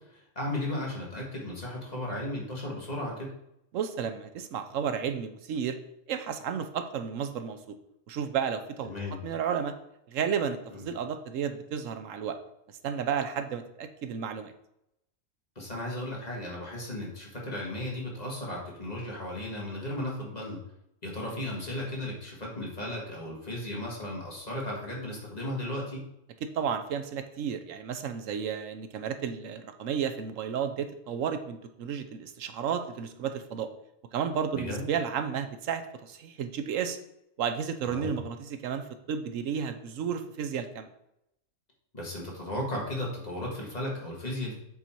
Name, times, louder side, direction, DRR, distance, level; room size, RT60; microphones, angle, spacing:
voice 1, 0.1-3.3 8.8-9.2 10.7-10.9 15.6-20.6 21.0-26.0 34.5-34.8 37.8-38.2 41.9-44.5, left 1 dB, 30° left, -3 dB, 2.0 m, -35 dB
voice 2, 3.7-5.8 6.1-7.8 8.1-9.7 10.1-12.4 12.8-14.5 26.4-33.7 34.1-37.0 37.4-40.9, right 7 dB, 80° right, 8 dB, 1.1 m, -32 dB
8.0 x 4.2 x 4.4 m, 0.79 s
omnidirectional pair, 1.3 m